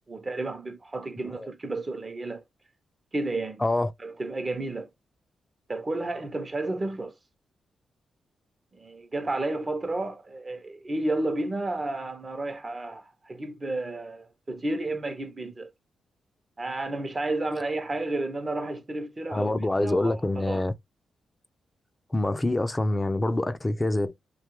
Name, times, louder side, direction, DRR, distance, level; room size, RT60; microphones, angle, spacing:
voice 1, 0.1-2.4 3.1-3.6 4.0-4.9 5.7-7.1 8.7-15.7 16.6-19.5 19.8-20.6, right 2 dB, 35° right, 0.7 m, -31 dB
voice 2, 19.3-20.7 22.1-24.1, left 2 dB, 20° left, 0.5 m, -26 dB
3.0 x 2.3 x 2.9 m
supercardioid pair, 60°, 0 cm